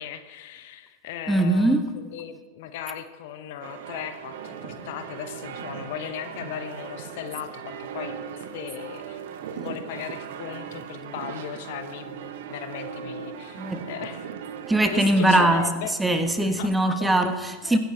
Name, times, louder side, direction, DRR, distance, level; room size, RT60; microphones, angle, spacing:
voice 1, 0.0-8.2 8.5-9.2 9.5-14.3 14.8-15.9 16.4-16.7 17.6-17.8, left 10 dB, 55° left, 10 dB, 0.9 m, -37 dB
voice 2, 1.3-1.9 13.6-13.8 14.7-15.7 16.0-17.8, right 1 dB, 10° right, 8 dB, 1.2 m, -21 dB
sound 1, 3.6-15.6, right 7 dB, 60° right, 1.0 m, -38 dB
23.0 x 10.0 x 3.3 m, 1.4 s
figure-of-eight pair, 80°, 0 cm